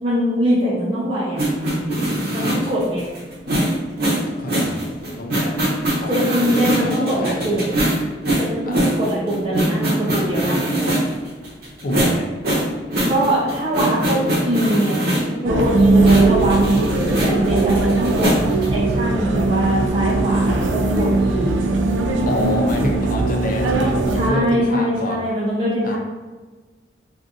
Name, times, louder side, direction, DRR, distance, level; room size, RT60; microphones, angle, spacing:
voice 1, 0.0-1.4 2.0-2.1 2.3-3.1 6.1-7.6 8.4-10.7 13.1-18.3 18.7-21.6 24.1-26.0, equal, 30° right, -8 dB, 0.6 m, -22 dB
sound 1, 1.4-15.4 16.0-18.7, right 1 dB, 60° right, 1.0 m, -22 dB
voice 2, 4.4-5.6 6.0-6.2 6.5-7.7 8.6-9.0 11.8-12.3 22.2-25.2 25.8-26.0, left 1 dB, 50° left, 1 dB, 0.4 m, -28 dB
sound 2, 15.4-24.3, right 2 dB, 90° right, 0.4 m, -19 dB
2.6 x 2.4 x 3.7 m, 1.3 s
head